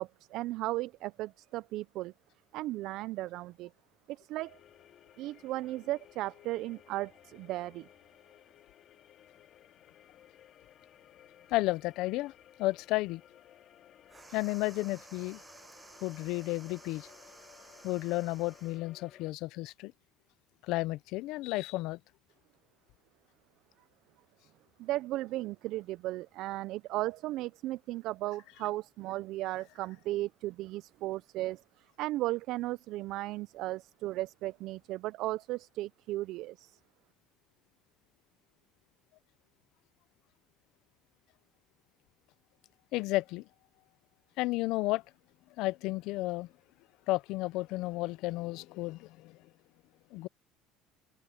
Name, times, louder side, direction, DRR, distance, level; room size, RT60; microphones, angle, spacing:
voice 1, 0.0-2.1 2.5-3.7 4.1-4.6 5.2-7.9 24.8-36.8, right 17 dB, 65° right, 0.4 m, -36 dB
sound 1, 4.4-19.3, left 11 dB, 50° left, 4.5 m, -58 dB
voice 2, 11.5-12.3 12.6-13.2 14.3-15.4 16.0-17.1 17.8-19.9 20.6-22.0 42.9-43.4 44.4-45.0 45.6-46.5 47.1-49.4 50.1-50.3, left 19 dB, 70° left, 0.5 m, -32 dB
sound 2, 14.1-18.9, right 3 dB, 15° right, 7.8 m, -55 dB
open air
cardioid pair, 125°, 0 cm